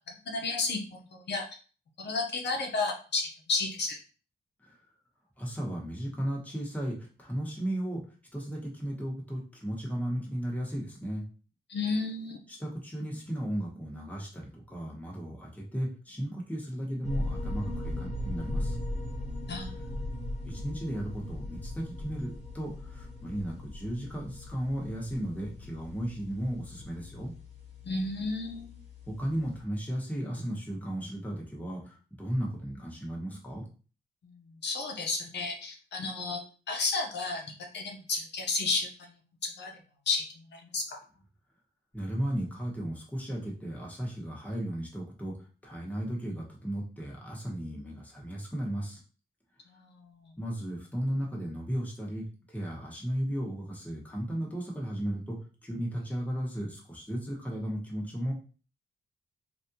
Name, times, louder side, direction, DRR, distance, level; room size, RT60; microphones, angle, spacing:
voice 1, 0.3-1.4 2.0-4.0 11.7-12.4 19.5-19.7 27.8-28.7 34.2-36.4 36.7-38.9 39.4-39.7 40.1-40.2 40.5-41.0 49.7-50.3, left 3 dB, 70° left, 1 dB, 0.7 m, -32 dB
voice 2, 5.4-8.0 8.3-11.2 12.5-18.8 20.4-27.3 29.1-33.7 41.9-49.0 50.4-58.3, equal, 10° left, -3 dB, 1.2 m, -35 dB
sound 1, 17.0-29.6, left 1 dB, 35° left, 1.3 m, -38 dB
3.3 x 2.5 x 2.7 m, 0.37 s
cardioid pair, 80°, 18 cm